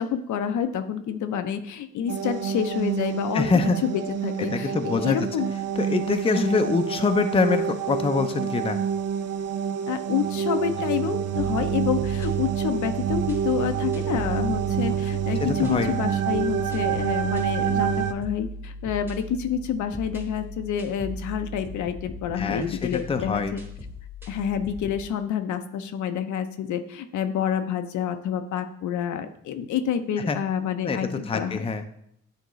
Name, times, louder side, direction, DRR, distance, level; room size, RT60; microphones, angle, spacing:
voice 1, 0.0-3.5 3.8-5.5 6.3-6.6 9.9-23.6 24.3-31.6, left 8 dB, 75° left, 8 dB, 0.6 m, -28 dB
sound 1, 2.1-18.1, right 8 dB, 55° right, 0.5 m, -27 dB
voice 2, 3.3-3.8 4.4-5.2 5.8-8.8 15.4-15.9 22.4-23.5 30.3-30.4 30.8-31.8, left 4 dB, 20° left, 8 dB, 0.5 m, -25 dB
sound 2, 11.4-25.1, left 1 dB, 5° right, 1.1 m, -39 dB
9.1 x 3.7 x 3.1 m, 0.71 s
cardioid pair, 90°, 30 cm